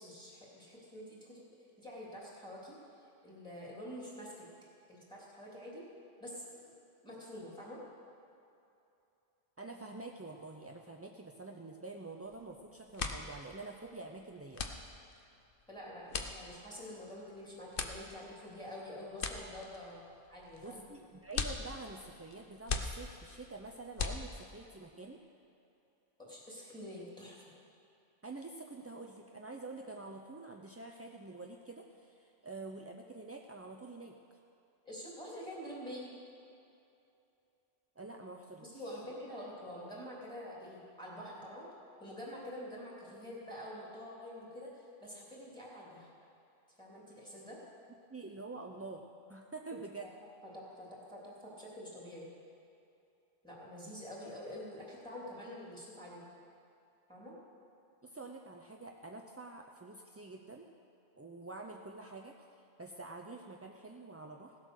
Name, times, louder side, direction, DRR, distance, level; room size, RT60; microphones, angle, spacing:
voice 1, 0.0-1.4 1.8-2.8 3.2-4.5 4.9-5.8 6.2-6.5 7.0-7.8 15.7-20.0 20.3-20.8 26.2-27.5 34.8-36.1 38.6-41.7 42.0-46.1 46.8-47.6 50.0-50.1 50.4-52.3 53.4-56.2 57.1-57.4, equal, 5° left, -5 dB, 3.1 m, -47 dB
voice 2, 9.6-14.6 20.6-25.2 28.2-34.1 38.0-38.8 39.1-39.2 48.1-49.0 49.3-50.1 58.0-60.7 61.2-64.6, right 3 dB, 20° right, 1 dB, 0.4 m, -47 dB
sound 1, 12.3-12.5 12.8-24.7, left 5 dB, 60° left, 1.0 m, -41 dB
16.5 x 8.0 x 6.4 m, 2.7 s
omnidirectional pair, 1.1 m